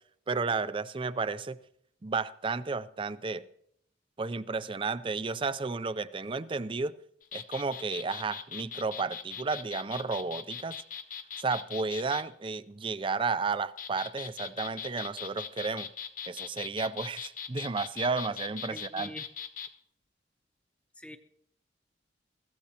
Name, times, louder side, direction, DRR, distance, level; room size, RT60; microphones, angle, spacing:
voice 1, 0.3-1.6 2.0-3.4 4.2-7.0 7.3-10.8 11.4-15.9 16.3-19.1, right 4 dB, 30° right, 0.5 m, -32 dB
sound 1, 7.2-12.2 13.5-19.7, left 7 dB, 50° left, 0.9 m, -40 dB
voice 2, 18.7-19.3 21.0-21.2, equal, 5° left, 0.8 m, -44 dB
22.5 x 15.0 x 2.9 m
head